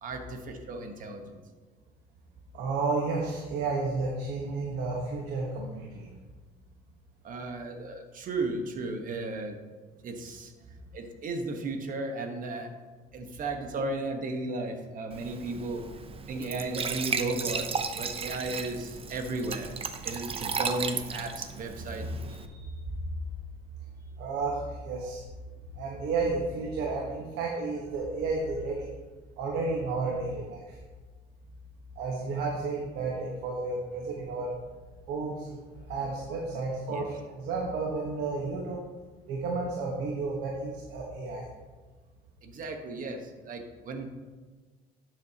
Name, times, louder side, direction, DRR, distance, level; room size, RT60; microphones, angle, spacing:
voice 1, 0.0-1.4 7.2-9.6 10.0-10.5 10.9-12.7 13.1-15.8 16.3-19.7 20.0-22.0 32.4-32.5 36.9-37.0 42.4-44.1, right 2 dB, 55° right, 5 dB, 1.3 m, -35 dB
voice 2, 2.5-6.1 21.8-22.8 24.2-25.2 25.7-28.9 29.4-30.8 32.0-34.5 35.1-35.6 35.9-38.8 39.3-41.5, right 3 dB, 85° right, -1 dB, 1.3 m, -32 dB
Glass / Trickle dribble / Fill (with liquid), 15.1-22.5, right 5 dB, 35° right, 0.7 m, -35 dB
11.5 x 7.6 x 2.9 m, 1.3 s
cardioid pair, 110°, 17 cm